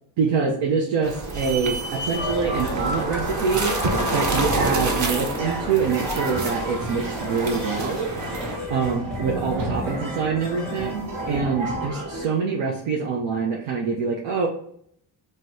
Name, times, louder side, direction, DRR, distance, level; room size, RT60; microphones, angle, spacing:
voice 1, 0.2-8.1 8.7-14.5, right 5 dB, 90° right, -1 dB, 0.6 m, -25 dB
sound 1, 1.0-8.6, right 2 dB, 35° right, 0.7 m, -28 dB
sound 2, 2.2-12.3, right 1 dB, 75° right, 1.2 m, -31 dB
2.7 x 2.1 x 3.5 m, 0.67 s
cardioid pair, 55°, 49 cm